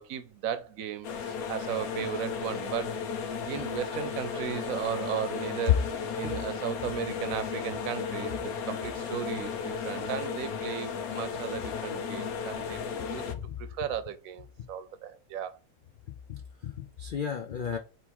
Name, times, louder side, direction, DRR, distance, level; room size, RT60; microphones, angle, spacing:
voice 1, 0.0-3.0 3.5-15.6, right 8 dB, 75° right, 1.0 m, -36 dB
sound 1, 1.0-13.3, left 6 dB, 90° left, 1.2 m, -35 dB
voice 2, 16.3-17.8, left 11 dB, 70° left, 0.4 m, -30 dB
3.5 x 3.1 x 4.5 m
omnidirectional pair, 1.5 m